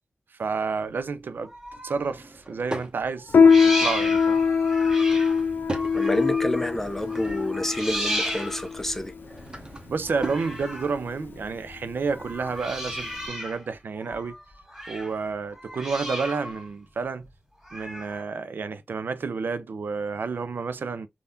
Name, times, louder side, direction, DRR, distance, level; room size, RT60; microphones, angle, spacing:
voice 1, 0.4-4.4 9.9-14.3 14.9-17.3 17.7-21.1, right 4 dB, 75° right, 0.4 m, -30 dB
sound 1, 1.4-2.2 3.3-6.7 7.1-8.9 10.1-11.0 12.1-13.7 14.0-15.2 15.5-16.7 17.6-18.2, equal, 10° right, 1.8 m, -34 dB
Drawer open or close / Wood, 2.0-2.9 4.7-6.0 6.5-7.7 9.0-10.5, right 2 dB, 25° right, 0.9 m, -38 dB
Piano, 3.3-13.3, left 5 dB, 75° left, 0.4 m, -23 dB
voice 2, 5.9-9.1, left 1 dB, 10° left, 0.5 m, -28 dB
3.5 x 2.3 x 2.6 m
wide cardioid pair, 80°, 3 cm